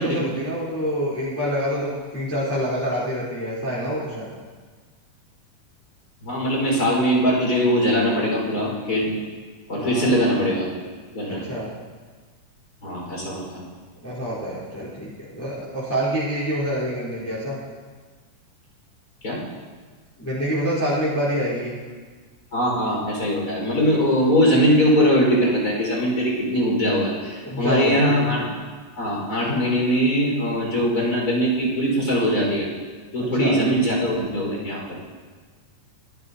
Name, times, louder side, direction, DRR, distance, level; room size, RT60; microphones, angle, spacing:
voice 1, 0.0-4.3 9.8-10.1 11.3-11.7 14.0-17.6 20.2-21.7 27.5-28.4 33.2-33.6, equal, 5° left, -9 dB, 3.6 m, -26 dB
voice 2, 6.2-9.1 9.7-10.6 11.1-11.4 12.8-13.6 19.2-19.4 22.5-28.4 29.0-32.7 33.1-34.8, equal, 25° left, -4 dB, 5.3 m, -21 dB
26.0 x 11.5 x 2.8 m, 1.5 s
omnidirectional pair, 3.7 m